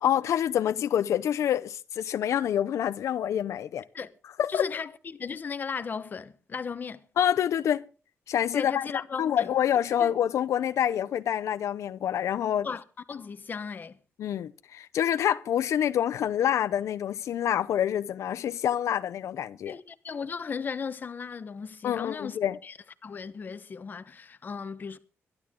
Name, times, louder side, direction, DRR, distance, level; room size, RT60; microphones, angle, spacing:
voice 1, 0.0-3.8 4.4-4.7 7.2-7.8 8.3-8.9 9.2-12.7 14.2-19.7 21.8-22.6, left 10 dB, 85° left, 0.7 m, -27 dB
voice 2, 4.5-7.0 8.5-9.5 10.0-10.1 12.6-14.0 19.7-22.8 23.0-25.0, left 5 dB, 40° left, 1.1 m, -36 dB
22.5 x 11.5 x 3.7 m
wide cardioid pair, 150°, 5 cm